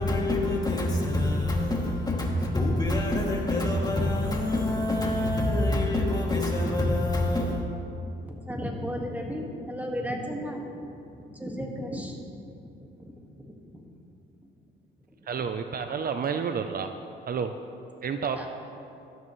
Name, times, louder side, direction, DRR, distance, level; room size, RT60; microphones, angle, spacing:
voice 1, 0.0-7.6, left 1 dB, 20° left, -2 dB, 2.5 m, -26 dB
voice 2, 8.2-10.9 11.4-12.4 13.5-13.9 18.3-18.5, equal, 10° right, 0 dB, 1.9 m, -34 dB
voice 3, 15.3-16.9 17.3-17.5 18.0-18.5, right 6 dB, 50° right, 7 dB, 0.7 m, -30 dB
17.0 x 12.5 x 3.2 m, 2.7 s
cardioid pair, 90°, 20 cm